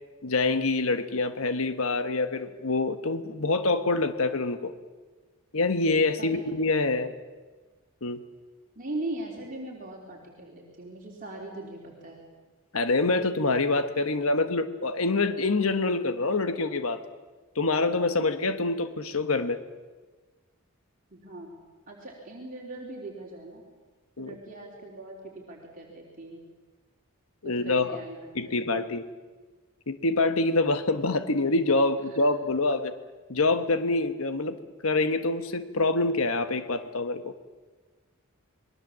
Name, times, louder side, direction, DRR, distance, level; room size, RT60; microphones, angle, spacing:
voice 1, 0.2-4.7 5.5-7.1 8.0-8.2 12.7-17.0 17.5-19.6 24.2-24.3 27.4-28.0 28.3-29.0 29.9-32.9 33.3-34.6 34.8-37.3, left 3 dB, 75° left, 9 dB, 1.2 m, -26 dB
voice 2, 8.8-12.2 21.1-21.6 21.9-23.6 24.2-26.4 27.4-28.7, right 2 dB, 40° right, -2 dB, 3.7 m, -40 dB
27.5 x 21.5 x 7.4 m, 1.3 s
head